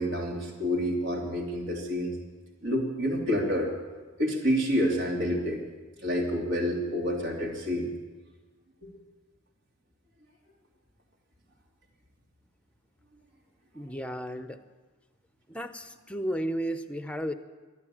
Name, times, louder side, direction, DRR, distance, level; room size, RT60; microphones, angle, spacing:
voice 1, 0.0-2.2 2.6-3.7 4.2-5.6 6.0-7.9 8.8-9.0, equal, 60° right, 0 dB, 3.0 m, -28 dB
voice 2, 13.7-14.6 15.5-17.3, equal, 5° left, 9 dB, 0.7 m, -33 dB
12.5 x 11.0 x 8.5 m, 1.3 s
head